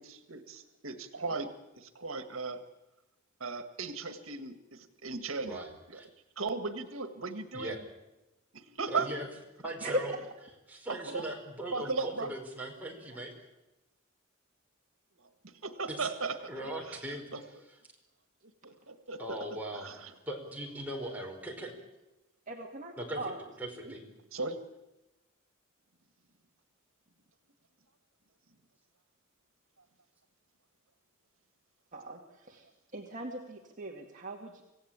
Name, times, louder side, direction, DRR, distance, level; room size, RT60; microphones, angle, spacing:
voice 1, 0.0-2.6 3.4-5.6 5.9-6.0 6.4-7.7 8.5-9.1 10.9-11.2 11.7-12.3 15.4-17.0 17.3-17.4 18.6-20.1 24.3-24.6, right 4 dB, 90° right, 9 dB, 1.8 m, -37 dB
voice 2, 5.5-6.1 7.5-7.8 8.9-9.3 9.6-10.1 10.7-13.3 15.9-16.1 16.5-17.2 19.2-21.7 23.0-23.3 23.6-24.0, right 1 dB, 10° right, 0 dB, 4.9 m, -39 dB
voice 3, 22.5-23.4 23.8-23.9 31.9-32.7 32.9-34.6, right 1 dB, 40° right, 1 dB, 2.1 m, -38 dB
26.0 x 16.5 x 8.9 m, 0.99 s
head